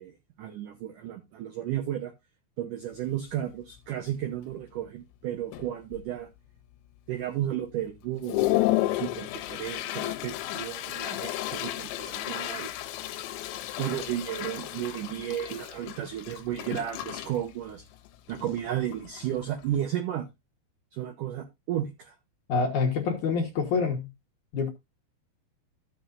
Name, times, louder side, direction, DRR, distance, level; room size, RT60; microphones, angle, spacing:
voice 1, 0.0-2.1 2.6-6.3 7.1-12.7 13.8-17.9 18.3-20.3 20.9-22.2, right 11 dB, 85° right, 1.8 m, -33 dB
Toilet flush, 2.9-3.0 3.5-3.8 4.1-4.6 5.1-5.2 5.5-6.3 6.7-6.8 7.4-7.5 7.9-19.9, left 16 dB, 90° left, 3.1 m, -33 dB
voice 2, 22.5-24.1 24.5-24.7, left 5 dB, 65° left, 2.0 m, -26 dB
14.0 x 7.2 x 2.6 m
omnidirectional pair, 5.2 m